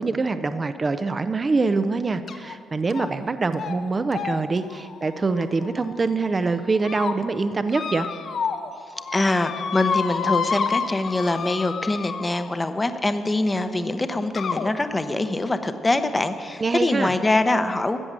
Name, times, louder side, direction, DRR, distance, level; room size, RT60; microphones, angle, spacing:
voice 1, 0.0-8.1 16.6-17.1, right 3 dB, 30° right, 10 dB, 0.5 m, -24 dB
sound 1, 2.3-2.5 2.9-3.3 3.5-3.8 4.1-6.0 6.6-7.1 7.7-8.7 9.0-12.6 13.6-13.7 14.4-14.7, left 6 dB, 55° left, 0.8 m, -29 dB
voice 2, 9.1-18.0, left 2 dB, 20° left, 9 dB, 0.8 m, -24 dB
14.0 x 7.8 x 7.5 m, 2.4 s
cardioid pair, 90°, 0 cm